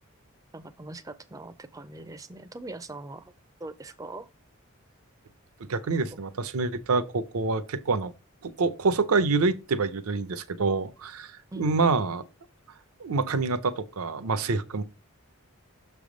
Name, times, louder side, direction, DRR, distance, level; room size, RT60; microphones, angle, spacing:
voice 1, 0.5-3.3 3.6-4.3 6.1-6.2 11.5-11.9, right 2 dB, 15° right, 0.4 m, -41 dB
voice 2, 5.7-8.1 8.4-12.2 13.0-14.8, right 4 dB, 80° right, 0.6 m, -26 dB
6.4 x 3.4 x 5.0 m
head